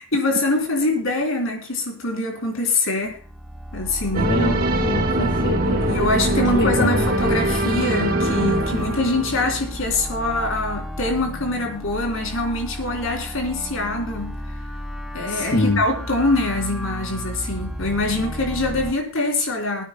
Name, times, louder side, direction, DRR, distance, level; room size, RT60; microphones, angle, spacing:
voice 1, 0.0-3.2 3.7-4.3 5.8-14.4 15.1-19.8, left 2 dB, 85° left, 1 dB, 3.5 m, -24 dB
sound 1, 3.0-18.9, equal, ahead, 1.0 m, -32 dB
sound 2, 4.1-9.7, right 1 dB, 45° right, 1.4 m, -23 dB
voice 2, 4.2-5.9 6.5-7.1 15.3-15.8, left 1 dB, 60° left, 2 dB, 1.2 m, -24 dB
25.0 x 9.2 x 2.3 m, 0.43 s
head